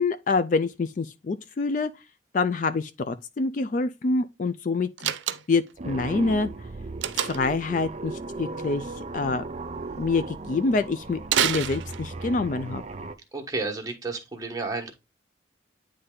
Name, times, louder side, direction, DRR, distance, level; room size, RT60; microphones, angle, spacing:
voice 1, 0.0-1.9 2.3-5.1 5.5-6.5 7.1-9.4 10.0-12.8, left 3 dB, 45° left, 0.4 m, -26 dB
Slam, 5.0-5.7 7.0-7.6 11.2-12.3, right 10 dB, 90° right, 0.5 m, -27 dB
sound 1, 5.8-13.2, right 3 dB, 35° right, 0.4 m, -37 dB
voice 2, 13.3-14.9, right 3 dB, 20° right, 1.2 m, -31 dB
9.5 x 3.3 x 3.7 m
head